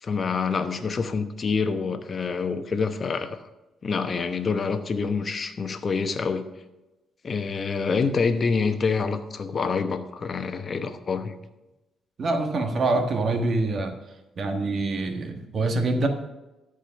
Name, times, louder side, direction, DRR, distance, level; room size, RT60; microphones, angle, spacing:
voice 1, 0.0-3.4 3.8-6.4 7.2-11.3, left 5 dB, 40° left, 9 dB, 1.0 m, -26 dB
voice 2, 12.2-14.0 14.4-16.1, right 2 dB, 50° right, 5 dB, 1.4 m, -25 dB
13.0 x 5.0 x 5.8 m, 1.0 s
cardioid pair, 90°, 0 cm